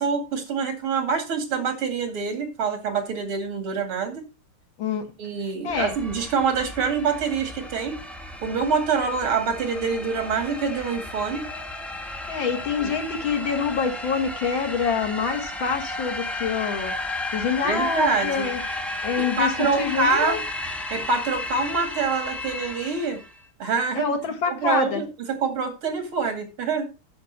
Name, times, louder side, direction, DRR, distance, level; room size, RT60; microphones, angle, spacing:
voice 1, 0.0-4.2 5.2-8.0 8.4-11.5 12.8-12.9 17.6-18.5 18.9-20.4 20.9-23.2 23.6-24.1 24.4-26.9, right 5 dB, 80° right, 3.1 m, -26 dB
sound 1, 5.7-23.4, left 2 dB, ahead, 0.9 m, -33 dB
voice 2, 12.3-16.9 17.3-18.6 19.0-20.4 24.0-25.0, left 6 dB, 65° left, 2.3 m, -26 dB
9.7 x 6.6 x 5.2 m
omnidirectional pair, 2.3 m